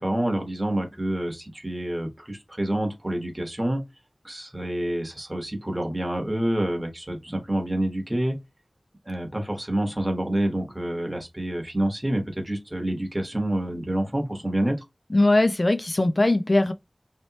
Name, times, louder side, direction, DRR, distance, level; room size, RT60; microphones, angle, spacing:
voice 1, 0.0-3.8 4.2-8.4 9.1-14.8, right 1 dB, 25° right, 1.2 m, -27 dB
voice 2, 15.1-16.7, left 2 dB, 45° left, 0.3 m, -20 dB
3.1 x 2.8 x 2.9 m
wide cardioid pair, 60°, 0 cm